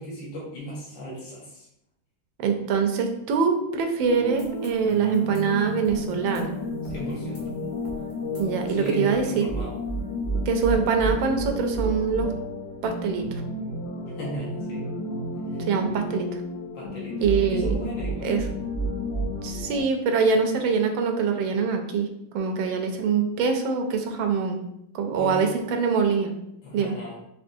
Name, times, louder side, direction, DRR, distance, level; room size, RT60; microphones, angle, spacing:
voice 1, 0.0-1.7 6.8-7.4 8.7-9.7 14.2-14.8 15.5-15.6 16.7-18.4 25.1-25.5 26.6-27.2, equal, 70° left, -7 dB, 2.2 m, -36 dB
voice 2, 2.4-6.5 8.4-9.4 10.5-12.3 12.8-13.2 15.6-16.3 17.2-17.7 18.2-18.4 19.4-22.1 22.3-24.6 24.9-26.3 26.7-26.9, right 5 dB, 85° right, 5 dB, 1.4 m, -24 dB
sound 1, 4.0-19.8, equal, 55° left, 0.8 m, -31 dB
5.2 x 2.9 x 2.6 m, 0.79 s
omnidirectional pair, 2.1 m